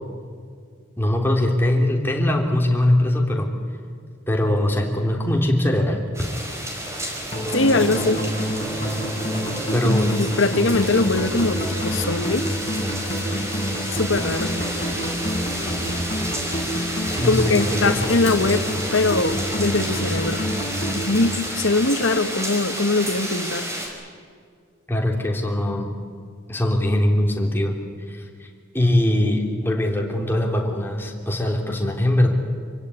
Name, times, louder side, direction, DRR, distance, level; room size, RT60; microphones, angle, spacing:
voice 1, 1.0-3.5 4.3-6.0 9.7-10.1 17.1-17.9 24.9-25.9 26.5-27.8 28.1-28.5 28.7-32.3, left 1 dB, 10° left, 1 dB, 3.3 m, -21 dB
sound 1, 6.1-23.9, equal, 15° right, 4.9 m, -31 dB
sound 2, 7.3-22.4, equal, 30° left, 4.4 m, -28 dB
voice 2, 7.5-8.2 9.8-12.6 13.9-14.5 17.2-18.6 18.9-20.4 20.9-23.7, left 3 dB, 90° left, 10 dB, 1.5 m, -22 dB
26.5 x 17.0 x 9.8 m, 2.2 s
head